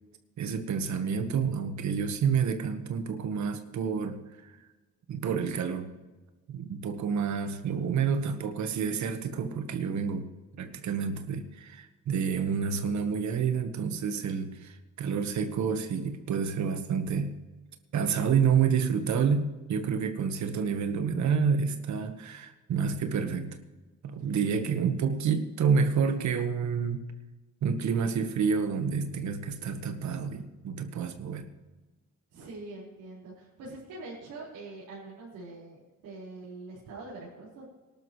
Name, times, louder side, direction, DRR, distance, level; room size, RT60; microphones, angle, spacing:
voice 1, 0.4-4.5 5.1-5.9 6.5-10.3 10.6-17.3 17.9-23.6 24.0-27.0 27.6-31.4, right 6 dB, 70° right, 8 dB, 1.4 m, -29 dB
voice 2, 32.3-37.7, right 2 dB, 85° right, -9 dB, 4.9 m, -44 dB
18.5 x 12.0 x 3.2 m, 1.2 s
cardioid pair, 90°, 30 cm